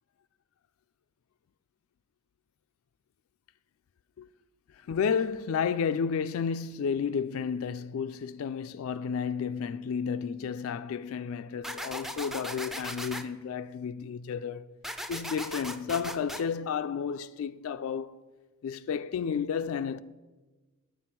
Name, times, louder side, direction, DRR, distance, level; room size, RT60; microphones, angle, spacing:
voice 1, 4.7-14.7 15.1-18.2 18.6-20.0, left 6 dB, 75° left, 0.3 m, -32 dB
sound 1, 11.6-13.2 14.8-16.4, equal, ahead, 0.4 m, -38 dB
9.4 x 8.3 x 5.8 m
head